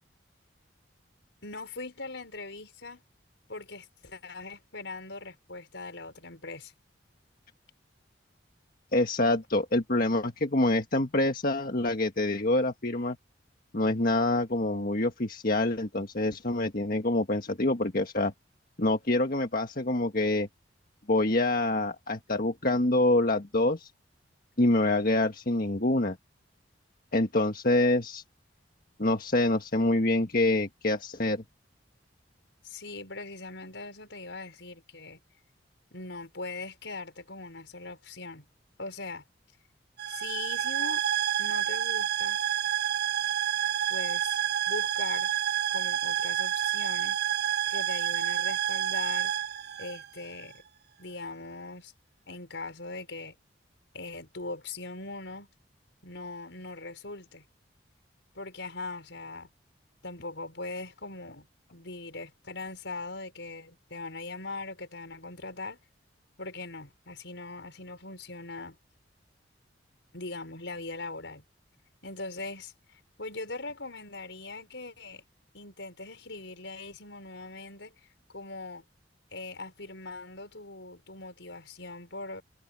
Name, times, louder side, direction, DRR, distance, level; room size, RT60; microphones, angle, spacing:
voice 1, 1.4-3.0 3.5-6.7 32.6-35.2 35.9-38.4 38.8-39.2 40.1-41.0 41.4-42.4 43.9-45.3 45.7-47.2 47.7-49.3 49.8-50.5 51.0-51.9 52.3-53.3 53.9-55.5 56.0-57.4 58.3-59.5 60.0-61.5 61.7-65.8 66.4-68.8 70.1-71.4 72.0-75.2 75.5-77.9 78.3-78.8 79.3-82.4, left 3 dB, 80° left, 4.9 m, -40 dB
voice 2, 8.9-13.2 13.7-18.3 18.8-20.5 21.1-23.9 24.6-26.2 27.1-28.2 29.0-31.4, left 2 dB, 50° left, 1.6 m, -26 dB
sound 1, 40.0-50.5, right 11 dB, 60° right, 1.3 m, -29 dB
head